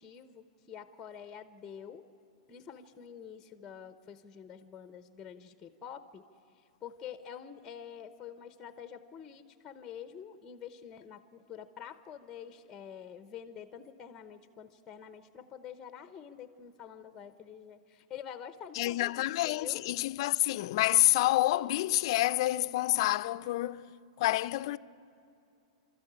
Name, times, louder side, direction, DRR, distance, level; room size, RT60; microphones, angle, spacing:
voice 1, 0.0-2.1 2.5-6.2 6.5-19.8, left 8 dB, 15° left, 0.8 m, -47 dB
voice 2, 18.8-23.8 24.2-24.8, left 17 dB, 50° left, 0.5 m, -28 dB
30.0 x 13.5 x 8.7 m
supercardioid pair, 160°, 3 cm